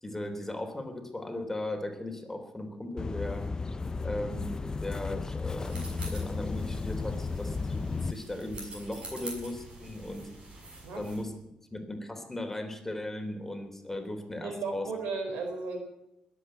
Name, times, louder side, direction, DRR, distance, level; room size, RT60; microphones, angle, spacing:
voice 1, 0.0-3.5 4.0-10.3 11.0-11.3 11.7-14.9, left 1 dB, 15° left, 5 dB, 3.4 m, -37 dB
sound 1, 3.0-8.1, left 4 dB, 30° left, 0.7 m, -34 dB
sound 2, 5.6-11.2, right 2 dB, 45° right, 6.8 m, -46 dB
voice 2, 14.4-15.8, right 4 dB, 90° right, 3 dB, 4.4 m, -34 dB
21.5 x 8.4 x 8.0 m, 0.90 s
cardioid pair, 70°, 2 cm